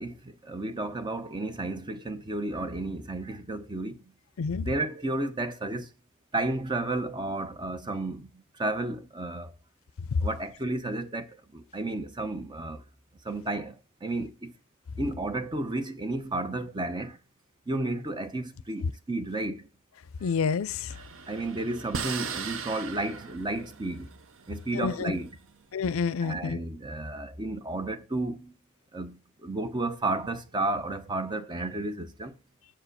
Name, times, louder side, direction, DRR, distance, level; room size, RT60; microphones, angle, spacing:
voice 1, 0.0-4.0 4.6-5.9 6.3-9.6 10.2-12.8 13.2-14.5 15.0-17.2 17.7-19.7 20.2-20.3 21.3-24.1 24.5-25.4 26.2-28.6 28.9-32.4, right 2 dB, 20° right, 0.7 m, -32 dB
voice 2, 20.2-20.9 24.7-25.1 25.7-26.6, left 5 dB, 70° left, 0.4 m, -28 dB
sound 1, 20.9-25.5, right 6 dB, 60° right, 0.7 m, -38 dB
7.3 x 5.0 x 6.5 m
head